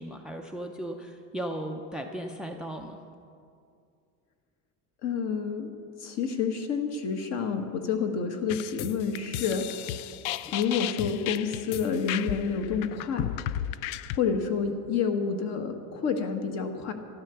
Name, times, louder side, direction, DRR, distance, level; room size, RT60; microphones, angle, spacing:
voice 1, 0.0-3.0 10.4-10.5, right 1 dB, ahead, 4 dB, 0.5 m, -36 dB
voice 2, 5.0-5.7 6.0-9.7 10.5-13.3 14.1-16.9, left 6 dB, 45° left, 6 dB, 1.5 m, -29 dB
sound 1, 8.5-14.2, left 12 dB, 75° left, 0.5 m, -34 dB
13.5 x 12.0 x 7.0 m, 2.4 s
cardioid pair, 155°, 36 cm